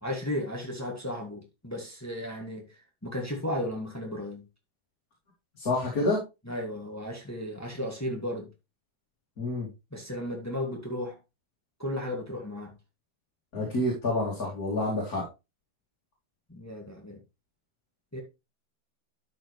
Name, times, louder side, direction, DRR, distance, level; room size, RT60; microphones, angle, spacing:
voice 1, 0.0-4.4 6.4-8.5 9.9-11.2 11.8-12.7 16.5-17.2 18.1-18.2, left 1 dB, 10° left, 1.9 m, -34 dB
voice 2, 5.6-6.2 9.4-9.7 13.5-15.2, left 2 dB, 45° left, 2.8 m, -28 dB
12.0 x 5.2 x 3.1 m
omnidirectional pair, 2.1 m